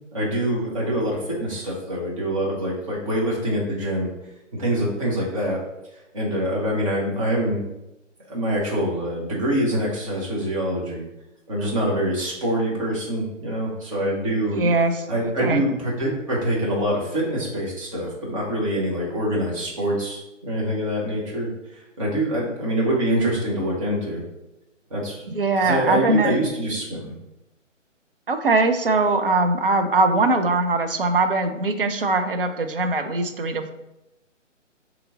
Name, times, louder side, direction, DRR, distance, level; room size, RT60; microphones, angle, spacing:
voice 1, 0.1-4.1 4.5-5.6 6.1-7.6 8.3-11.0 11.5-14.6 15.1-24.2 24.9-25.2 25.6-27.1, right 1 dB, 25° right, -4 dB, 0.9 m, -25 dB
voice 2, 14.5-15.1 15.4-15.6 25.3-26.4 28.3-33.7, right 2 dB, 50° right, 7 dB, 0.4 m, -21 dB
3.9 x 3.0 x 3.6 m, 0.93 s
figure-of-eight pair, 140°, 38 cm